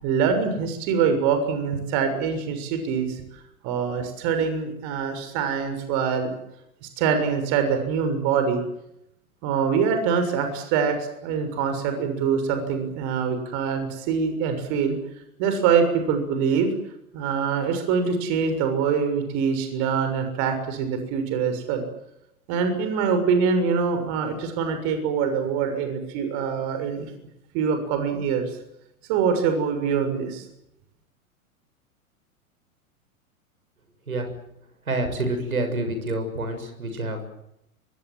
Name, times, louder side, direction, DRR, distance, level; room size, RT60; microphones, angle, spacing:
voice 1, 0.0-3.1 3.6-6.3 7.0-8.6 9.4-11.0 11.2-14.9 15.4-16.7 17.1-21.8 22.5-27.1 27.5-28.5 29.1-30.4, right 6 dB, 40° right, 8 dB, 6.7 m, -24 dB
voice 2, 34.9-37.2, right 2 dB, 75° right, 8 dB, 7.0 m, -27 dB
25.0 x 24.5 x 7.8 m, 0.81 s
figure-of-eight pair, 95°, 43 cm